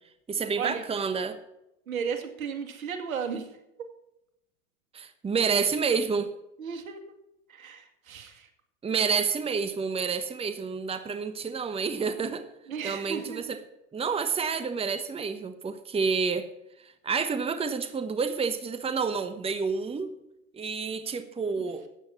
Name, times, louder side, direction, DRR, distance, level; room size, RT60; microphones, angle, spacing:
voice 1, 0.3-1.4 4.9-6.3 8.8-12.4 12.8-13.6 13.9-16.5 16.8-20.1 20.5-21.8, right 5 dB, 15° right, 10 dB, 1.1 m, -29 dB
voice 2, 1.9-3.5 3.8-3.9 6.6-7.0 7.5-8.5 12.7-13.4, right 6 dB, 80° right, 7 dB, 2.2 m, -34 dB
13.5 x 9.0 x 5.8 m, 0.85 s
hypercardioid pair, 100°, 41 cm